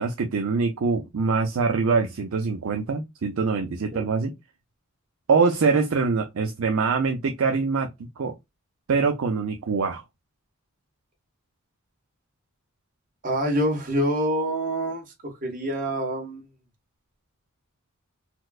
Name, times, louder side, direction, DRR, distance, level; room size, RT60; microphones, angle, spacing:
voice 1, 0.0-4.3 5.3-7.9 8.2-8.3 8.9-10.0, right 4 dB, 70° right, 0.5 m, -24 dB
voice 2, 13.2-16.4, equal, 40° right, 1.4 m, -26 dB
4.3 x 2.1 x 2.3 m
head